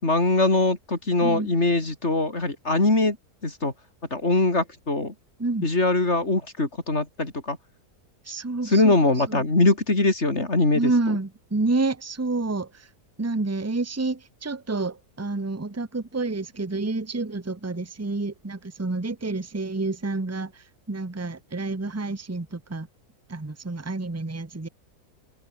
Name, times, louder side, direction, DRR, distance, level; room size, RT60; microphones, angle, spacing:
voice 1, 0.0-3.2 3.4-3.7 4.1-5.1 5.6-7.6 8.6-11.2, left 2 dB, 45° left, 4.5 m, -22 dB
voice 2, 1.2-1.5 5.4-5.7 8.3-8.9 9.3-9.4 10.7-12.9 13.2-20.5 20.9-22.9 23.3-24.7, right 3 dB, 10° right, 1.0 m, -28 dB
omnidirectional pair, 1.6 m